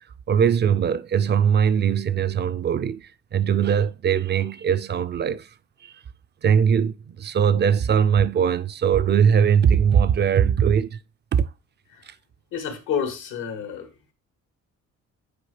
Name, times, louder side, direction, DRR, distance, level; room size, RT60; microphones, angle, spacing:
voice 1, 0.3-5.5 5.8-6.0 6.4-11.0 11.3-11.5 12.1-12.2, right 7 dB, 35° right, 0.4 m, -20 dB
voice 2, 12.5-13.9, left 7 dB, 90° left, 1.5 m, -29 dB
8.6 x 4.7 x 3.2 m
cardioid pair, 90°, 30 cm